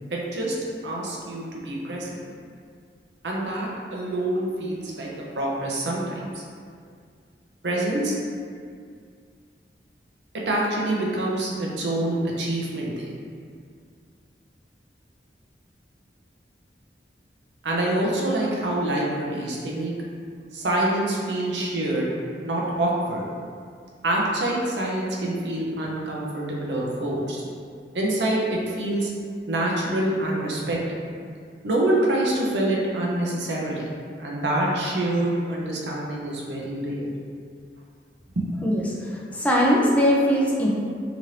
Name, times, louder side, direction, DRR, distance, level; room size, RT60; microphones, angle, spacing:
voice 1, 0.1-0.5 0.8-2.2 3.2-6.4 7.6-8.2 10.3-13.1 17.6-19.9 20.5-22.1 22.4-23.3 24.0-27.4 27.9-29.1 29.5-30.8 31.6-33.9 34.2-37.1 38.4-38.5, right 1 dB, 80° right, -3 dB, 0.6 m, -26 dB
voice 2, 38.6-40.7, equal, 10° left, -4 dB, 0.4 m, -21 dB
2.9 x 2.5 x 3.1 m, 2.2 s
head